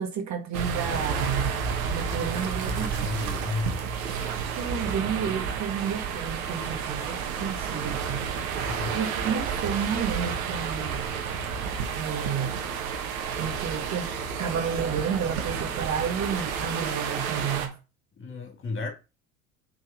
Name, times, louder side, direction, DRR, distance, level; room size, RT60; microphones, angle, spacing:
voice 1, 0.0-1.6 1.9-2.9 4.6-8.3 8.9-11.0 12.0-12.6 13.4-17.8, right 7 dB, 40° right, 1.5 m, -31 dB
sound 1, 0.5-17.7, right 6 dB, 75° right, 1.5 m, -31 dB
voice 2, 2.7-3.8 8.6-9.0 18.2-18.9, left 3 dB, 30° left, 2.8 m, -33 dB
6.4 x 4.2 x 5.9 m
hypercardioid pair, 75°, 41 cm